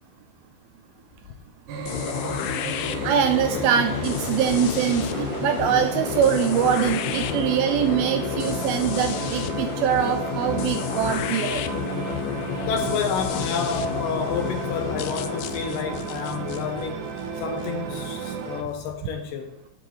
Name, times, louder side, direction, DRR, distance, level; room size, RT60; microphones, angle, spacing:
sound 1, 1.7-18.6, right 6 dB, 65° right, 2.2 m, -33 dB
sound 2, 1.9-17.7, left 11 dB, 90° left, 1.9 m, -30 dB
voice 1, 3.0-11.6, right 8 dB, 80° right, 2.5 m, -23 dB
voice 2, 12.6-17.0 17.4-19.6, left 6 dB, 75° left, 2.2 m, -29 dB
10.5 x 10.0 x 3.1 m
omnidirectional pair, 4.4 m